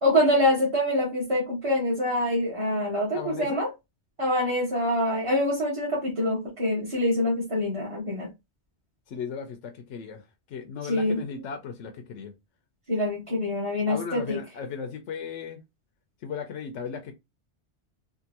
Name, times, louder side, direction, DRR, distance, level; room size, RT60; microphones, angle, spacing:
voice 1, 0.0-3.7 4.2-8.3 10.8-11.2 12.9-14.4, left 1 dB, 30° right, 1.2 m, -25 dB
voice 2, 3.1-3.6 9.1-10.2 10.5-12.3 13.9-15.6 16.2-17.1, left 6 dB, 85° left, 0.9 m, -36 dB
3.5 x 2.5 x 2.8 m
omnidirectional pair, 1.2 m